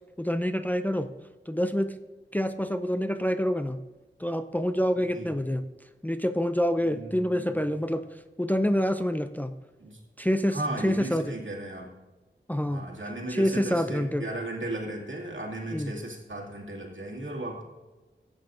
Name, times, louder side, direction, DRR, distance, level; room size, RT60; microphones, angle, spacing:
voice 1, 0.2-1.1 1.5-2.0 2.3-3.8 4.2-5.6 6.0-8.0 8.4-9.5 10.2-10.6 10.8-11.3 12.5-12.9 13.3-14.2 15.7-15.9, equal, 10° left, 9 dB, 0.4 m, -27 dB
voice 2, 5.0-5.3 6.8-7.6 9.8-10.0 10.5-11.9 12.6-17.6, right 1 dB, 75° right, -2 dB, 2.3 m, -36 dB
14.0 x 8.9 x 2.6 m, 1.2 s
wide cardioid pair, 45°, 20 cm